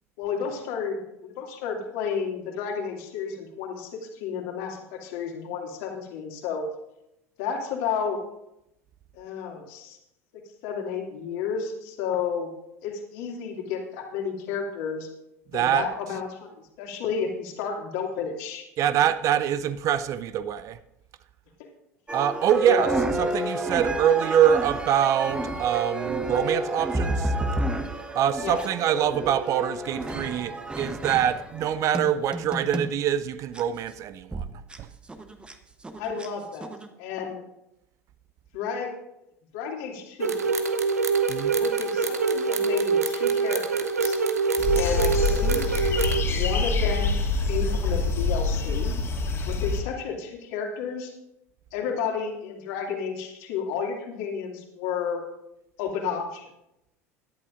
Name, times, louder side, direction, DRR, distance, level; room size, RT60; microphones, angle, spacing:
voice 1, 0.2-6.7 7.4-8.2 9.1-10.0 10.6-12.5 12.8-15.1 15.5-18.6 21.6-21.7 22.6-23.0 28.4-28.6 36.0-36.7 37.0-37.4 38.5-38.9 39.5-40.7 41.5-44.2 44.7-45.6 46.3-48.9 49.5-51.1 51.7-55.3 55.8-56.5, left 6 dB, 55° left, 2.4 m, -31 dB
voice 2, 15.5-15.9 18.8-20.8 22.1-27.3 28.2-34.5 34.8-34.9 41.3-41.5, right 10 dB, 40° right, 0.5 m, -24 dB
sound 1, 22.1-33.0 33.5-33.6 34.3-34.4 34.7-34.8 35.1-35.5 35.8-36.3 36.6-36.9, right 2 dB, 10° right, 1.0 m, -30 dB
sound 2, 40.2-46.2, right 5 dB, 80° right, 0.8 m, -25 dB
sound 3, 44.6-49.8, left 3 dB, 35° left, 2.2 m, -25 dB
17.5 x 11.0 x 2.5 m
figure-of-eight pair, 75°, 8 cm